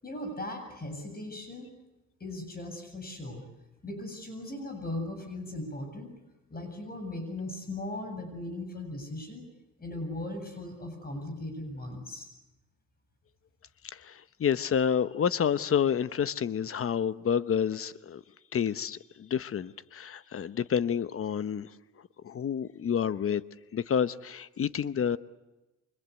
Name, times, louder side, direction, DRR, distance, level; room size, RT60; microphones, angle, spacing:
voice 1, 0.0-1.7 2.2-3.5 3.8-6.1 6.5-9.5 9.8-12.3, left 1 dB, 30° left, 7.7 m, -38 dB
voice 2, 13.9-18.2 18.5-21.7 22.2-23.4 23.7-25.2, left 8 dB, 45° left, 1.0 m, -29 dB
29.5 x 24.5 x 8.3 m
cardioid pair, 100°, 30 cm